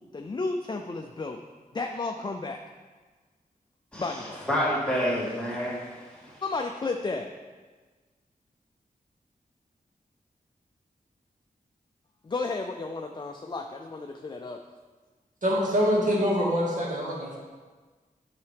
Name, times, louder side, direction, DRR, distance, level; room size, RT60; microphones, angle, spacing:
voice 1, 0.1-1.4 1.7-2.6 4.0-4.5 6.4-7.3 12.2-14.6, left 3 dB, 30° left, 3 dB, 0.4 m, -32 dB
voice 2, 3.9-6.4, equal, 5° left, -8 dB, 2.5 m, -29 dB
voice 3, 15.4-17.4, equal, 55° right, -4 dB, 2.0 m, -25 dB
9.5 x 5.7 x 3.4 m, 1.4 s
wide cardioid pair, 100°, 15 cm